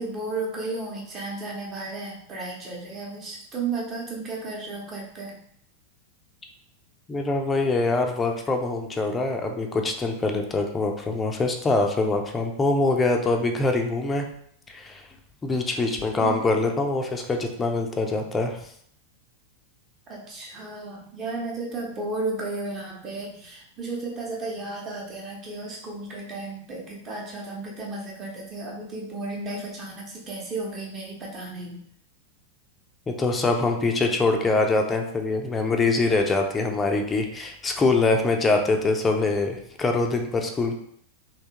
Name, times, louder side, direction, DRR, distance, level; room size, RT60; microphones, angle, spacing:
voice 1, 0.0-5.4 16.2-16.4 20.1-31.8, right 3 dB, 30° right, -2 dB, 1.0 m, -33 dB
voice 2, 7.1-14.3 14.7-15.0 15.4-18.6 33.1-40.7, left 3 dB, 15° left, 3 dB, 0.5 m, -24 dB
3.4 x 2.7 x 2.9 m, 0.67 s
figure-of-eight pair, 90°, 0 cm